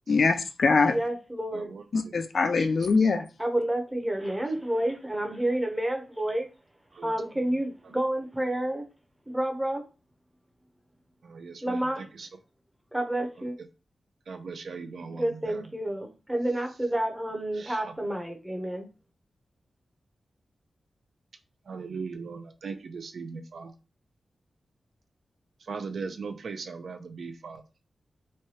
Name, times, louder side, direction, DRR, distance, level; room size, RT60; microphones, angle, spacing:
voice 1, 0.1-1.0 1.9-3.2, left 4 dB, 55° left, 0.3 m, -23 dB
voice 2, 0.9-1.7 3.4-6.5 7.0-8.8 9.3-9.8 11.6-12.0 12.9-13.6 15.1-18.9, right 1 dB, 10° right, 0.6 m, -29 dB
voice 3, 1.5-2.1 2.6-2.7 3.0-3.1 6.9-7.1 11.2-12.3 13.4-13.5 14.3-15.7 17.5-17.9 21.7-23.7 25.6-27.6, right 5 dB, 70° right, 0.4 m, -39 dB
3.1 x 2.2 x 2.8 m
wide cardioid pair, 125°, 0 cm